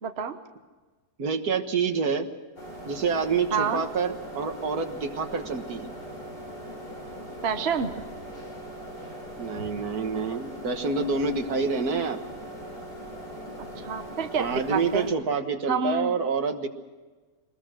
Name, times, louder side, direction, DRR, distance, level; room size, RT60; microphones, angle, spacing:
voice 1, 0.0-0.4 3.5-3.8 7.4-7.9 13.8-15.1 15.7-16.1, right 6 dB, 40° right, 7 dB, 1.2 m, -28 dB
voice 2, 1.2-2.3 2.9-5.9 9.4-12.2 14.4-16.7, right 5 dB, 65° right, 7 dB, 1.9 m, -27 dB
sound 1, 2.6-15.1, equal, 75° left, 6.4 m, -40 dB
23.0 x 20.5 x 6.2 m, 1.3 s
omnidirectional pair, 1.8 m